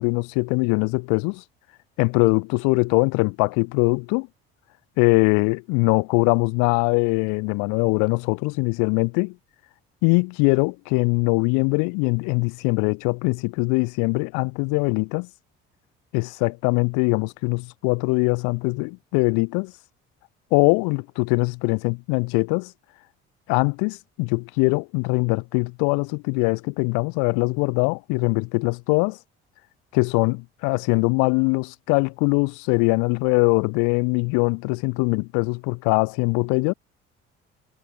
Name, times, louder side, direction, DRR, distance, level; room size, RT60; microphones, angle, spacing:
voice 1, 0.0-1.4 2.0-4.3 5.0-9.3 10.0-15.3 16.1-19.7 20.5-22.7 23.5-29.2 29.9-36.7, left 34 dB, 85° left, 1.8 m, -22 dB
supercardioid pair, 70°, 29 cm